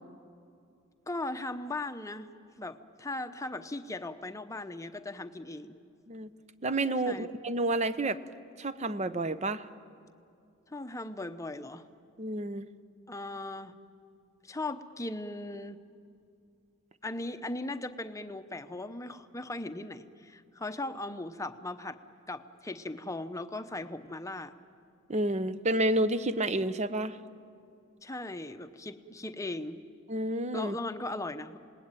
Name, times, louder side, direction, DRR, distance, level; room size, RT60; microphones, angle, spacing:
voice 1, 1.1-2.3 2.6-5.8 7.1-7.3 10.7-11.8 13.1-13.7 14.4-15.8 17.0-22.0 22.3-24.5 28.0-29.8 30.5-31.6, left 2 dB, 15° left, 9 dB, 0.8 m, -38 dB
voice 2, 6.6-8.2 8.6-9.7 12.2-12.7 25.1-27.2 30.1-30.8, right 1 dB, 35° right, 13 dB, 0.8 m, -30 dB
28.0 x 19.5 x 9.0 m, 2.5 s
head